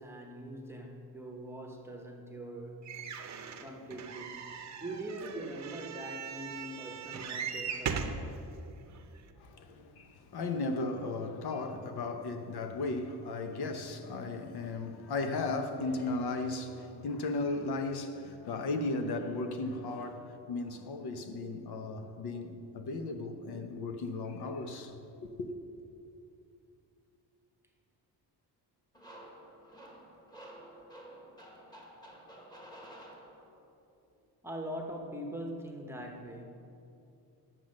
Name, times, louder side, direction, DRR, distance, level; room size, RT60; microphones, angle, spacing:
voice 1, 0.0-2.9 3.6-8.5 34.4-36.4, right 1 dB, 5° right, 0.9 m, -42 dB
sound 1, 2.9-8.2 8.9-9.0 9.3-9.4, right 6 dB, 40° right, 0.7 m, -39 dB
voice 2, 9.4-25.5, left 3 dB, 65° left, 1.0 m, -36 dB
sound 2, 28.9-33.7, right 1 dB, 10° left, 1.4 m, -51 dB
10.0 x 7.5 x 6.4 m
cardioid pair, 155°, 41 cm